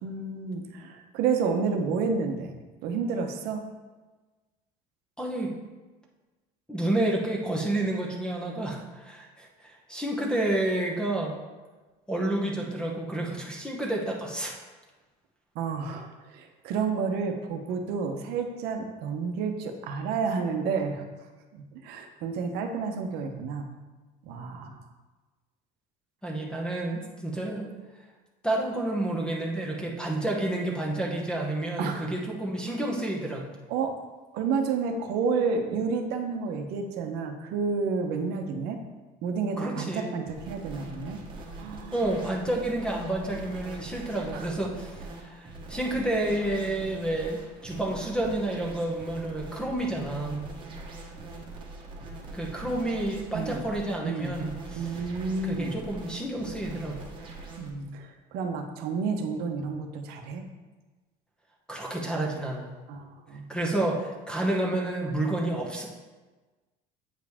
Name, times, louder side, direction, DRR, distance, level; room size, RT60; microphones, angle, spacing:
voice 1, 0.0-2.6 2.8-3.6 15.5-21.0 21.5-23.7 24.2-24.8 31.8-32.1 33.7-33.9 34.3-38.8 39.2-41.2 41.6-42.0 44.3-44.5 53.3-53.6 54.0-54.4 54.7-55.8 57.6-60.4 62.9-63.5, right 5 dB, 70° right, 5 dB, 0.9 m, -30 dB
voice 2, 5.2-5.5 6.7-11.3 12.1-14.5 26.2-27.7 28.4-33.5 39.6-40.2 41.9-50.5 52.3-55.0 55.4-57.0 61.7-62.7 63.5-65.9, right 1 dB, 5° left, -1 dB, 0.9 m, -30 dB
sound 1, 40.3-57.7, right 2 dB, 30° right, 1.2 m, -43 dB
7.9 x 4.9 x 3.5 m, 1.2 s
cardioid pair, 145°, 17 cm